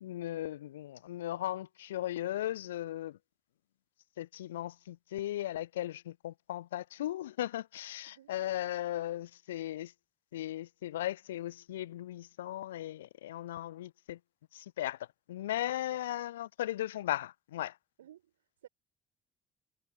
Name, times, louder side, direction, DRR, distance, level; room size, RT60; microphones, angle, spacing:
voice 1, 0.0-3.2 4.2-9.9 10.3-14.2 14.5-15.0 15.3-17.8, left 13 dB, 75° left, 0.4 m, -37 dB
voice 2, 8.1-8.6 15.9-16.0 18.0-18.7, right 11 dB, 75° right, 4.7 m, -57 dB
figure-of-eight pair, 50°, 0 cm